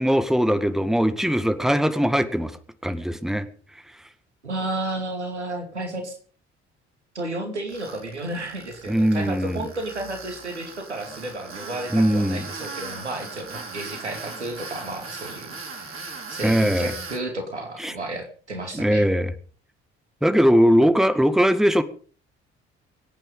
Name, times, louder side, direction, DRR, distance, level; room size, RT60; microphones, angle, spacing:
voice 1, 0.0-2.6 2.8-3.5 8.9-9.7 11.9-12.4 16.4-16.9 17.8-17.9 18.7-19.3 20.2-21.8, equal, ahead, 2.0 m, -20 dB
voice 2, 4.4-6.2 7.1-19.1, right 2 dB, 85° right, 2.6 m, -32 dB
Tools, 7.7-17.2, right 4 dB, 40° right, 5.2 m, -38 dB
24.5 x 9.1 x 5.5 m
figure-of-eight pair, 45°, 33 cm